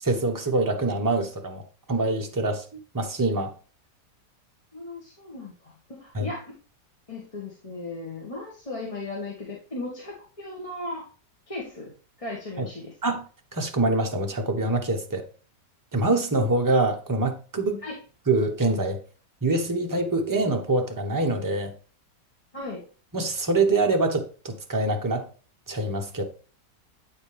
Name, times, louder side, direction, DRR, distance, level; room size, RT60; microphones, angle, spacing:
voice 1, 0.0-3.5 6.1-6.3 12.6-12.7 13.0-13.2 13.5-15.3 15.9-17.8 18.3-19.0 19.4-21.7 23.1-25.3 25.7-26.2, right 2 dB, 20° right, 0.5 m, -25 dB
voice 2, 4.7-6.5 7.1-11.0 11.5-11.9 12.2-12.9 17.8-18.0 22.5-22.8, left 2 dB, 20° left, 1.3 m, -36 dB
8.6 x 5.1 x 3.3 m
omnidirectional pair, 1.9 m